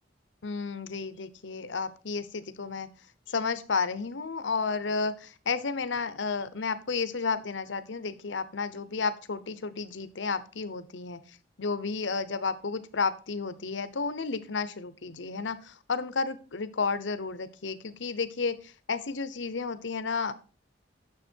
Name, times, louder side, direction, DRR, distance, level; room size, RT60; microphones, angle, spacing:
voice 1, 0.4-2.9 3.3-11.2 11.6-20.3, left 4 dB, 80° left, 13 dB, 0.8 m, -32 dB
9.9 x 6.7 x 4.5 m, 0.35 s
head